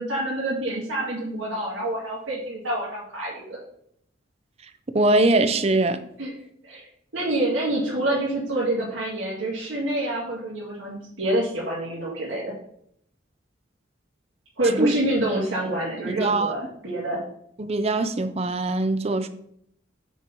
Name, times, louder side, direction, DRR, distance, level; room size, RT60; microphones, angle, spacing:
voice 1, 0.0-3.6 6.2-6.3 6.6-6.8 7.1-12.5 14.6-17.2, right 1 dB, 85° right, 2.1 m, -27 dB
voice 2, 4.9-6.0 14.8-14.9 16.0-16.6 17.6-19.3, right 2 dB, 30° right, 0.5 m, -22 dB
6.2 x 4.5 x 5.4 m
head